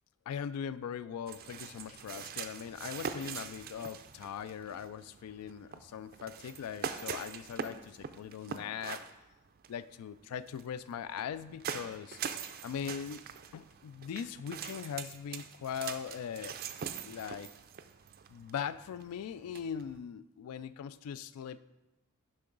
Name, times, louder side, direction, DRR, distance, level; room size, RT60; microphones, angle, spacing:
voice 1, 0.3-9.1 9.7-12.2 12.6-13.2 13.5-16.6 17.0-17.5 18.3-21.6, left 8 dB, 85° left, 16 dB, 0.3 m, -40 dB
sound 1, 1.3-20.0, right 7 dB, 45° right, 0.3 m, -43 dB
11.0 x 3.8 x 3.8 m, 1.0 s
head